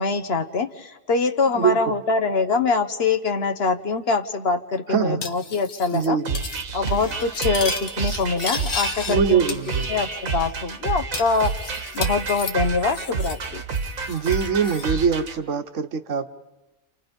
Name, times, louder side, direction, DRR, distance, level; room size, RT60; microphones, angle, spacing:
voice 1, 0.0-6.2 6.7-9.4 9.9-11.5 11.9-13.6, left 4 dB, 50° left, 7 dB, 1.2 m, -24 dB
voice 2, 1.5-1.9 4.9-5.2 5.9-6.4 9.1-9.9 14.1-16.3, right 6 dB, 65° right, 8 dB, 1.4 m, -23 dB
Cutlery silverware, 5.2-6.1 6.3-6.6 6.9-9.2 9.5-10.2 10.5-10.6 11.1-13.5 13.7-14.9, left 5 dB, 80° left, 1.6 m, -33 dB
sound 1, 6.2-15.4, right 5 dB, 85° right, 1.7 m, -29 dB
29.5 x 27.5 x 5.3 m, 1.1 s
omnidirectional pair, 1.4 m